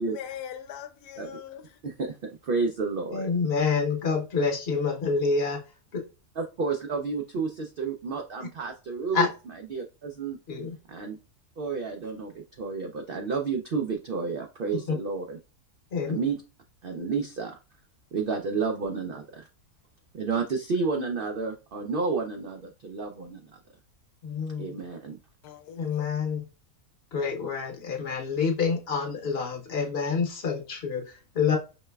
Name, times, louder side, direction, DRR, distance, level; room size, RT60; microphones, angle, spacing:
voice 1, 0.0-1.7 25.4-26.1, left 9 dB, 80° left, 1.1 m, -41 dB
voice 2, 1.8-3.3 6.4-9.3 9.7-10.4 10.9-11.2 11.6-15.4 16.1-16.4 16.8-17.6 18.1-19.5 20.1-23.5 24.6-25.2, right 4 dB, 90° right, 0.4 m, -31 dB
voice 3, 3.1-5.6 5.9-6.0 9.1-9.3 10.5-10.7 14.9-15.0 15.9-16.2 24.2-24.8 25.8-26.4 27.1-31.6, left 5 dB, 45° left, 1.0 m, -27 dB
5.2 x 3.2 x 2.2 m
omnidirectional pair, 1.6 m